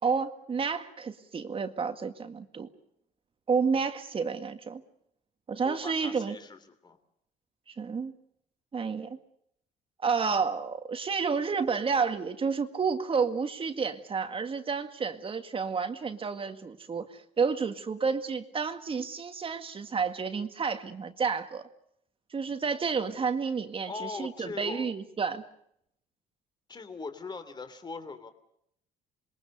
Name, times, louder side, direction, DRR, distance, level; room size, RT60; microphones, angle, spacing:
voice 1, 0.0-2.7 3.5-4.8 5.5-6.4 7.8-8.1 8.7-9.2 10.0-21.7 22.3-25.4, right 5 dB, 35° right, 1.9 m, -30 dB
voice 2, 5.6-7.0 23.9-24.8 26.7-28.3, left 4 dB, 25° left, 3.0 m, -40 dB
27.5 x 22.0 x 6.8 m
cardioid pair, 110°, 17 cm